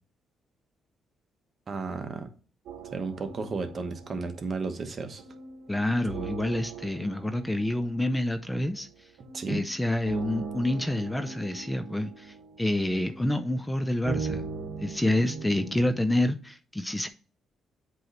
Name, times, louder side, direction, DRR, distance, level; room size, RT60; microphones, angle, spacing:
voice 1, 1.7-2.3 2.9-5.2 9.3-9.6, right 4 dB, 40° right, 7 dB, 1.0 m, -33 dB
sound 1, 2.7-16.1, right 5 dB, 80° right, 1.0 m, -40 dB
voice 2, 5.7-8.9 9.5-14.5 14.8-17.1, left 1 dB, 10° left, 9 dB, 0.5 m, -28 dB
7.7 x 3.1 x 3.9 m, 0.39 s
cardioid pair, 90°, 0 cm